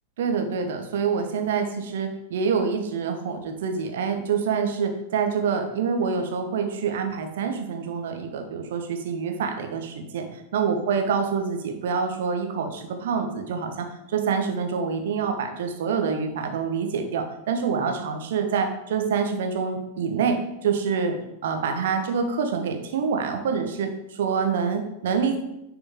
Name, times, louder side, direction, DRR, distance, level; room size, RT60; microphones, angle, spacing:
voice 1, 0.2-21.2 21.4-25.4, right 6 dB, 60° right, 5 dB, 1.2 m, -26 dB
9.9 x 5.2 x 3.6 m, 0.87 s
figure-of-eight pair, 90°, 0 cm